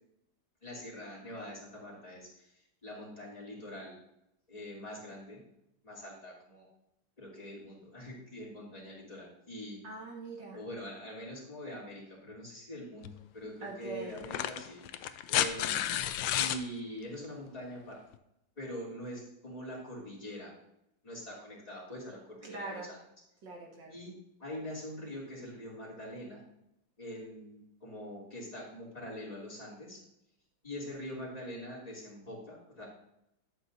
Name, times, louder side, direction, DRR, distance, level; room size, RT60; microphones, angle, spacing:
voice 1, 0.6-2.3 2.8-3.9 4.5-5.4 5.8-6.7 7.2-9.8 10.5-15.9 16.3-18.0 18.6-20.5 21.0-23.0 23.9-24.1 24.4-26.4 27.0-30.0 30.6-32.9, equal, 20° left, -6 dB, 3.4 m, -44 dB
voice 2, 9.8-10.6 13.6-14.2 22.4-22.9 23.4-23.9, right 3 dB, 75° right, -1 dB, 2.4 m, -42 dB
sound 1, 13.0-13.2 14.2-16.6 18.1-18.2, left 11 dB, 85° left, 1.3 m, -31 dB
11.5 x 7.9 x 2.8 m, 0.79 s
omnidirectional pair, 2.0 m